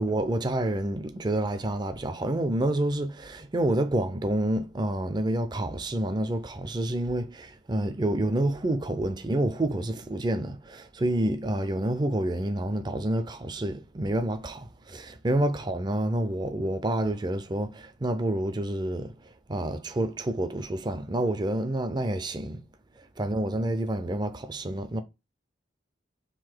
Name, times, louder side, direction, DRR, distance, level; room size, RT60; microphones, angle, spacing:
voice 1, 0.0-19.1 19.5-22.6 23.2-25.0, right 1 dB, 25° right, 0.4 m, -28 dB
3.9 x 2.7 x 4.4 m
head